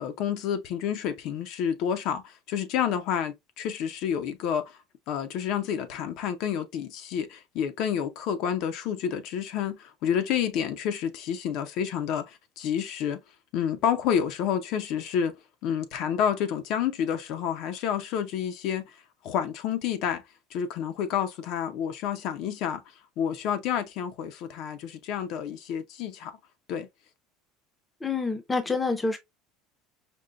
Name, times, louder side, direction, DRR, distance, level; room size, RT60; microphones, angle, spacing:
voice 1, 0.0-4.8 5.1-13.2 13.5-15.3 15.6-18.8 19.2-20.2 20.5-22.8 23.2-26.3 26.7-26.9, left 8 dB, 55° left, 0.6 m, -29 dB
voice 2, 28.0-29.2, left 4 dB, 10° left, 0.6 m, -27 dB
5.2 x 2.1 x 2.4 m
cardioid pair, 155°, 0 cm